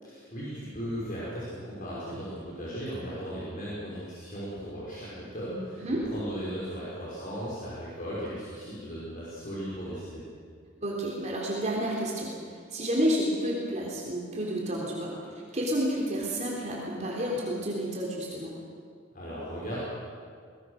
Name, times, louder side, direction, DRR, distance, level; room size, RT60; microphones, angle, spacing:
voice 1, 0.0-10.2 19.1-19.8, equal, 45° left, -7 dB, 5.7 m, -37 dB
voice 2, 10.8-12.3 12.7-15.1 15.5-18.5, equal, 35° right, -3 dB, 3.6 m, -30 dB
24.0 x 20.0 x 6.6 m, 2.1 s
head